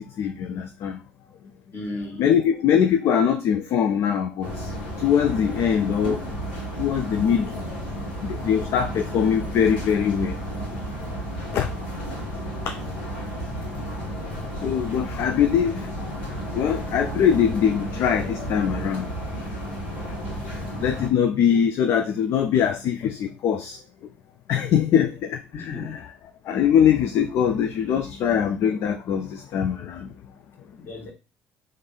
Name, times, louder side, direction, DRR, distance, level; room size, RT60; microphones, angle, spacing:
voice 1, 0.2-1.0 2.2-6.2 6.8-7.6 8.2-10.4 11.5-11.7 12.7-13.3 14.6-16.2 16.5-19.1 20.6-23.8 24.5-26.1 26.5-30.1, left 8 dB, 60° left, 0.4 m, -22 dB
voice 2, 1.7-2.2 19.9-20.6 25.5-26.0 30.7-31.1, left 2 dB, 40° left, 1.5 m, -36 dB
sound 1, 4.4-21.1, right 1 dB, 85° left, 1.3 m, -32 dB
3.3 x 2.5 x 4.0 m
hypercardioid pair, 55°, 5 cm